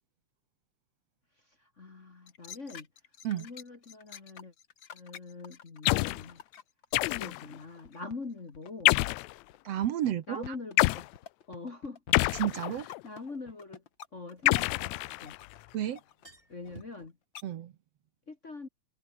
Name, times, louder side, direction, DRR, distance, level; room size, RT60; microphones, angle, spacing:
voice 1, 1.4-2.9 3.3-4.5 4.9-6.4 7.1-8.9 10.3-11.1 11.5-12.0 12.7-13.8 14.1-15.3 16.5-17.2 18.3-18.7, left 3 dB, 30° left, 1.7 m, -43 dB
sound 1, 2.3-8.2 8.5-17.1 17.3-17.4, left 8 dB, 50° left, 1.8 m, -48 dB
sound 2, 5.9-6.3 6.9-7.5 8.9-9.3 10.8-11.1 12.1-13.0 14.5-15.5, left 21 dB, 80° left, 1.7 m, -27 dB
voice 2, 9.6-10.6 12.3-12.9 15.7-16.0 17.4-17.7, right 11 dB, 65° right, 2.0 m, -31 dB
sound 3, 11.7-11.8 14.1-15.4 15.7-15.8 16.1-17.1, right 2 dB, 20° right, 4.3 m, -54 dB
omnidirectional pair, 3.3 m